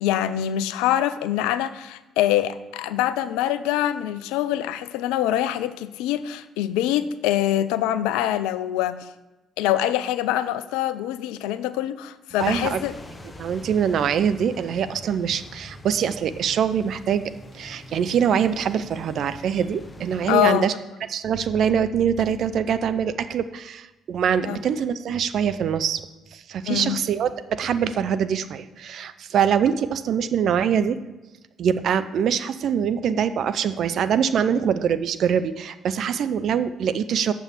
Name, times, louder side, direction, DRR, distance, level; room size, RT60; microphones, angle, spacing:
voice 1, 0.0-9.1 9.6-12.9 20.3-20.7 24.5-24.6 26.7-27.0, left 12 dB, 70° left, 14 dB, 0.4 m, -24 dB
sound 1, 12.4-20.4, left 1 dB, 25° left, 0.9 m, -43 dB
voice 2, 12.4-12.8 13.4-20.7 21.1-26.0 26.3-31.0 31.6-37.3, right 8 dB, 55° right, 12 dB, 0.5 m, -24 dB
7.1 x 6.0 x 7.3 m, 1.1 s
hypercardioid pair, 50°, 0 cm